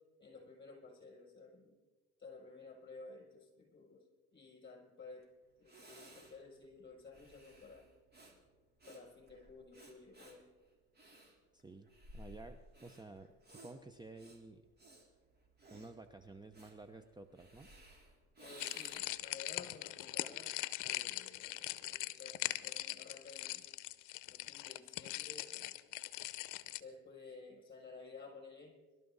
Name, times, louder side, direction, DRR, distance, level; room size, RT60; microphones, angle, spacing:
voice 1, 0.2-1.8 2.2-4.1 4.3-5.3 5.6-7.9 8.9-10.5 18.4-20.5 20.8-23.7 24.3-25.8 26.7-28.7, left 4 dB, 30° left, -1 dB, 6.9 m, -54 dB
Breathing, 5.2-5.3 5.6-19.3, right 1 dB, 30° right, 3.7 m, -58 dB
voice 2, 11.5-14.6 15.7-17.7, right 2 dB, 15° right, 9 dB, 0.8 m, -53 dB
sound 1, 18.6-26.8, left 17 dB, 70° left, 0.7 m, -41 dB
24.5 x 12.5 x 4.0 m, 1.3 s
supercardioid pair, 90°, 32 cm